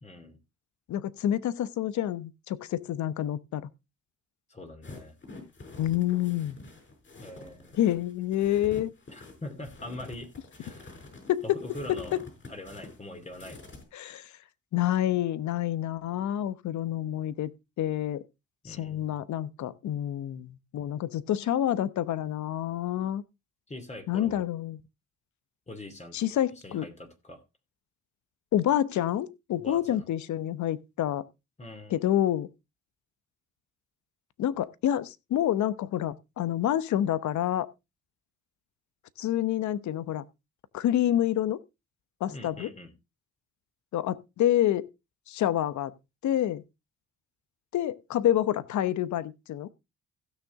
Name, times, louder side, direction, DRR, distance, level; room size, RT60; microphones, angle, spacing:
voice 1, 0.0-0.4 4.5-5.2 7.2-7.8 9.1-10.3 10.6-11.1 11.4-12.2 12.5-13.6 18.6-19.2 23.7-24.4 25.7-26.2 26.6-27.4 29.6-30.0 31.6-32.0 42.3-42.9, left 1 dB, 20° left, 2.4 m, -43 dB
voice 2, 0.9-3.7 5.8-6.6 7.7-8.9 11.3-11.4 11.9-12.2 13.9-14.3 14.7-17.5 17.8-18.2 18.6-23.2 24.1-24.8 26.1-26.9 28.5-31.3 31.9-32.5 34.4-37.7 39.2-40.2 40.7-41.6 42.2-42.7 43.9-44.9 45.3-45.9 46.2-46.6 47.7-49.7, left 12 dB, 70° left, 0.9 m, -28 dB
sound 1, 4.8-13.8, left 3 dB, 40° left, 5.4 m, -47 dB
16.0 x 6.4 x 3.5 m
cardioid pair, 90°, 30 cm